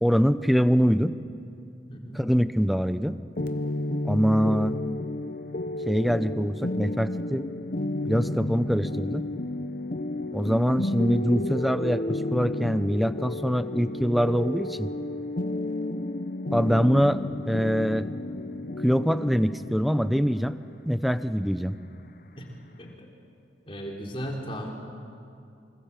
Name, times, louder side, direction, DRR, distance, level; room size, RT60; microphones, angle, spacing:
voice 1, 0.0-1.1 2.1-3.2 4.0-4.8 5.9-7.5 8.1-9.3 10.3-14.9 16.5-18.1 18.8-20.6 20.9-21.8, equal, ahead, 12 dB, 0.6 m, -24 dB
voice 2, 1.9-2.2 22.4-22.5 22.8-23.1 23.7-24.7, equal, 30° left, -1 dB, 4.0 m, -36 dB
sound 1, 3.4-22.9, left 1 dB, 50° left, 0.9 m, -32 dB
25.5 x 25.0 x 7.5 m, 2.5 s
head